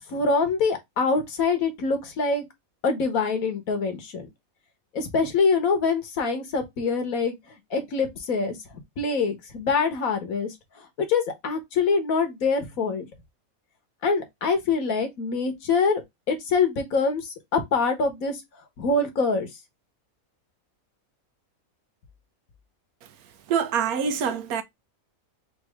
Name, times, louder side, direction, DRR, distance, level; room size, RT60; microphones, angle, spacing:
voice 1, 0.1-2.4 2.8-4.3 4.9-8.6 9.0-13.1 14.0-16.0 16.3-18.4 18.8-19.5, left 4 dB, 70° left, 1.6 m, -25 dB
voice 2, 23.5-24.6, right 7 dB, 85° right, 1.2 m, -25 dB
4.2 x 2.8 x 3.4 m
omnidirectional pair, 1.5 m